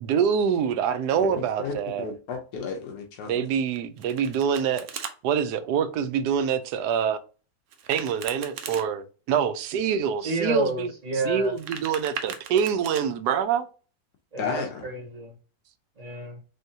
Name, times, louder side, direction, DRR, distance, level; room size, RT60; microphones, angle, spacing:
voice 1, 0.0-2.1 3.3-4.9 5.2-7.2 7.9-10.9 11.3-13.7, right 7 dB, 85° right, 1.2 m, -25 dB
voice 2, 1.2-3.4 14.4-14.8, left 5 dB, 80° left, 1.3 m, -33 dB
Domestic sounds home sounds, 3.7-5.1 7.7-8.8 11.4-13.0, right 7 dB, 65° right, 0.9 m, -38 dB
voice 3, 10.2-11.5 14.3-15.3 16.0-16.4, right 1 dB, 25° right, 1.7 m, -30 dB
3.8 x 3.5 x 2.7 m
omnidirectional pair, 1.7 m